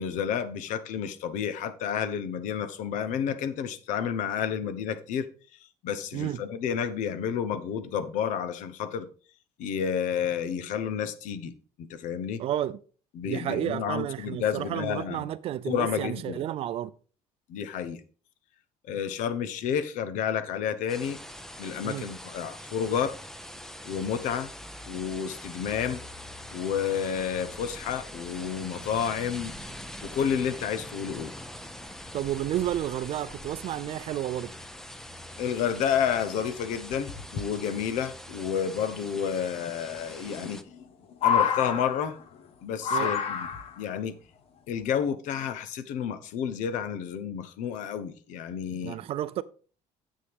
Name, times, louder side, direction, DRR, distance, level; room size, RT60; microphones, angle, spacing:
voice 1, 0.0-5.3 5.8-9.1 9.6-11.5 11.8-12.4 13.1-15.3 15.7-16.4 17.5-18.0 18.9-21.2 21.6-23.1 23.8-24.5 24.9-26.0 26.5-29.5 30.0-31.3 35.4-40.6 41.2-42.2 42.6-43.5 43.8-44.1 44.7-49.0, left 8 dB, 70° left, 1.0 m, -30 dB
voice 2, 12.4-12.8 13.3-16.9 21.8-22.1 32.1-34.5 42.9-43.1 48.8-49.4, right 12 dB, 45° right, 0.5 m, -31 dB
sound 1, 20.9-40.6, left 1 dB, 5° left, 0.6 m, -43 dB
sound 2, 36.9-37.5 39.0-39.1 40.3-40.8 41.1-42.4 42.8-43.8 44.8-44.9, left 7 dB, 45° left, 1.1 m, -28 dB
9.8 x 7.7 x 3.6 m
cardioid pair, 175°, 14 cm